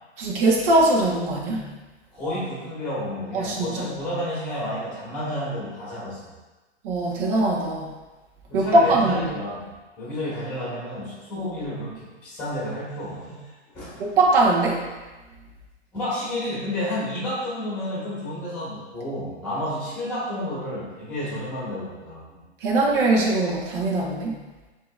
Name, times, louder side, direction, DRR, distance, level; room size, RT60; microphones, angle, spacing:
voice 1, 0.2-1.6 3.3-3.8 6.8-7.9 8.5-9.1 14.0-14.9 22.6-24.3, right 2 dB, 50° right, -3 dB, 1.3 m, -21 dB
voice 2, 2.1-6.3 8.5-9.7 10.0-13.5 13.7-14.1 15.9-22.4, left 1 dB, 5° left, -7 dB, 1.4 m, -31 dB
7.2 x 3.0 x 2.4 m, 1.2 s
hypercardioid pair, 130°, 34 cm